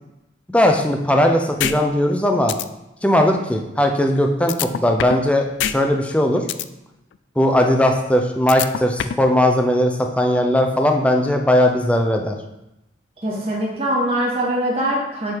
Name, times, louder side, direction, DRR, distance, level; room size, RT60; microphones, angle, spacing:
voice 1, 0.5-2.6 3.0-6.4 7.4-12.4, left 1 dB, 5° left, 3 dB, 0.6 m, -18 dB
sound 1, 1.6-1.8 2.1-2.2 2.5-2.6 4.5-5.3 5.6-5.8 6.1-6.7 8.5-9.3, left 10 dB, 70° left, 0.3 m, -23 dB
voice 2, 13.2-15.3, right 1 dB, 30° right, -5 dB, 1.9 m, -22 dB
7.7 x 3.7 x 4.6 m, 0.91 s
head